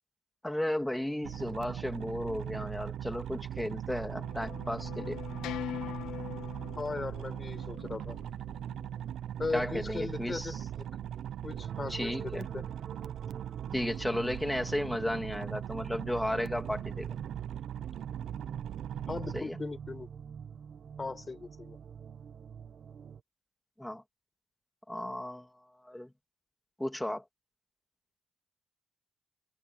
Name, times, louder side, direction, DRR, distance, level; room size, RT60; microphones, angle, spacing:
voice 1, 0.4-5.2 9.5-10.6 11.9-12.5 13.7-17.1 19.3-19.6 23.8-24.0 24.9-26.1 26.8-27.2, left 1 dB, 5° left, 3.1 m, -34 dB
sound 1, 1.2-19.4, right 10 dB, 60° right, 0.7 m, -40 dB
sound 2, 4.0-9.1, left 12 dB, 85° left, 1.1 m, -43 dB
voice 2, 6.8-8.2 9.4-10.5 11.4-12.6 19.1-20.1 21.0-21.8, left 4 dB, 20° left, 5.5 m, -38 dB
sound 3, 11.6-23.2, right 7 dB, 40° right, 1.5 m, -46 dB
cardioid pair, 150°, 0 cm